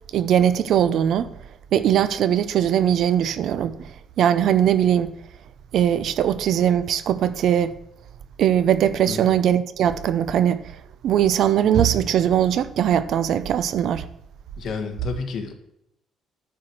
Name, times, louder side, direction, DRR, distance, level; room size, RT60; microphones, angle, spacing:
voice 1, 0.1-1.3 1.7-3.9 4.2-5.1 5.7-7.8 8.4-10.7 11.0-14.1, right 10 dB, 60° right, 0.6 m, -20 dB
voice 2, 9.1-9.4 14.6-15.5, left 5 dB, 50° left, 1.8 m, -30 dB
10.5 x 4.8 x 7.6 m
cardioid pair, 140°, 0 cm